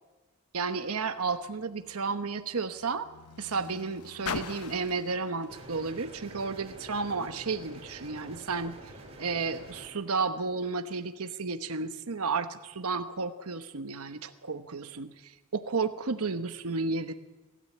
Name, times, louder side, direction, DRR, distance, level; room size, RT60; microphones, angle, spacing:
voice 1, 0.5-3.1 3.4-8.8 9.2-17.1, right 4 dB, 80° right, 8 dB, 1.0 m, -32 dB
Car, 0.7-7.2 8.0-8.1, left 5 dB, 80° left, 1.0 m, -44 dB
sound 1, 5.5-9.9, right 1 dB, 30° right, 4.2 m, -47 dB
25.5 x 13.5 x 8.5 m, 1.2 s
head